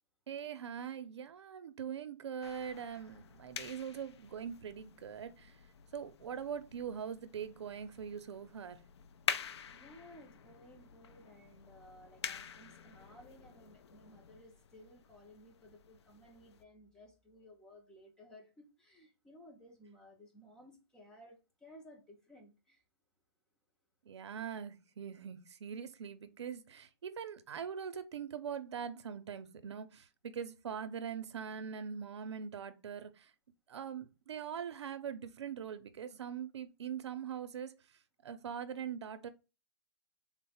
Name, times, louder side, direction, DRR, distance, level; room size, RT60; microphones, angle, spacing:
voice 1, 0.3-5.6 5.9-8.8 24.1-33.3 33.7-39.3, right 7 dB, 85° right, 0.5 m, -42 dB
sound 1, 2.4-16.6, left 7 dB, 75° left, 0.4 m, -47 dB
voice 2, 9.7-22.8, equal, 5° left, 0.4 m, -58 dB
3.8 x 2.0 x 4.1 m
hypercardioid pair, 170°, 14 cm